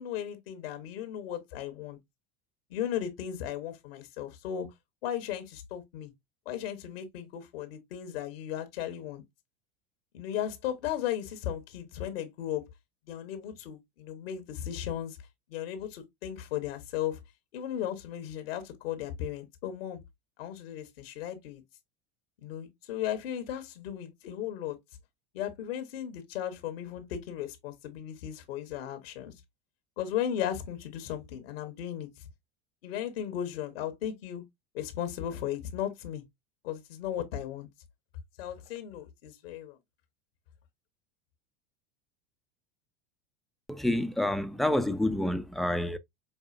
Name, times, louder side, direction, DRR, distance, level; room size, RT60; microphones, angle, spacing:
voice 1, 0.0-2.0 2.7-4.7 5.0-6.1 6.4-9.2 10.1-12.7 13.1-15.2 15.5-17.2 17.5-20.0 20.4-21.6 22.4-24.8 25.3-29.3 30.0-32.1 32.8-34.4 34.7-36.2 36.6-37.7 38.4-39.8, left 10 dB, 80° left, 1.0 m, -36 dB
voice 2, 43.7-46.0, left 1 dB, ahead, 0.3 m, -28 dB
5.4 x 2.5 x 2.3 m
supercardioid pair, 105°, 29 cm